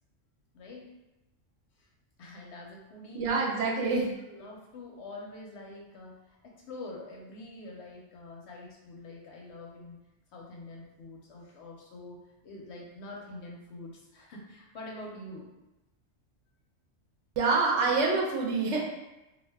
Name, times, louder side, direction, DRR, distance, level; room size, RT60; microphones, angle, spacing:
voice 1, 0.5-0.9 1.8-1.9 2.2-3.3 3.7-10.0 10.3-12.2 12.4-15.5 17.8-17.9, left 2 dB, 65° left, -2 dB, 0.8 m, -45 dB
voice 2, 3.1-4.1 17.4-18.8, right 4 dB, 70° right, -1 dB, 0.8 m, -26 dB
2.4 x 2.2 x 3.3 m, 0.99 s
omnidirectional pair, 1.3 m